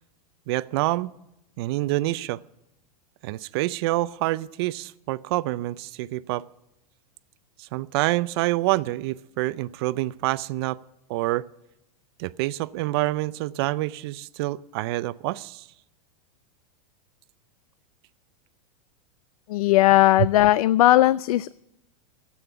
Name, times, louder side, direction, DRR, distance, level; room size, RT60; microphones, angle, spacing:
voice 1, 0.5-1.1 1.6-2.4 3.2-6.4 7.6-10.8 11.1-11.5 12.2-15.7, right 18 dB, 45° right, 18 dB, 0.4 m, -27 dB
voice 2, 19.5-21.5, left 15 dB, 75° left, 18 dB, 0.4 m, -18 dB
12.5 x 8.6 x 9.7 m, 0.86 s
supercardioid pair, 160°, 19 cm